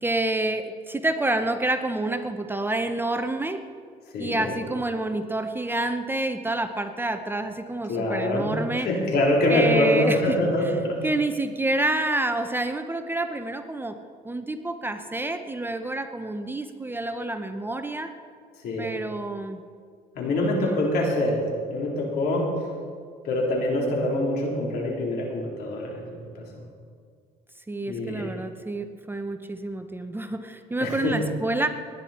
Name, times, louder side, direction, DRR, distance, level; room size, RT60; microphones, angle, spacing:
voice 1, 0.0-3.6 4.2-8.9 9.5-10.4 11.0-14.0 14.2-18.1 18.8-19.6 20.5-20.8 27.7-31.7, right 2 dB, 10° right, 7 dB, 0.8 m, -28 dB
voice 2, 4.1-4.5 7.9-11.0 18.6-18.9 20.2-21.4 21.7-22.5 23.2-26.1 26.4-26.6 27.8-28.3 30.8-31.2, left 1 dB, 70° left, -1 dB, 3.6 m, -25 dB
19.5 x 9.9 x 4.3 m, 2.1 s
cardioid pair, 110°, 17 cm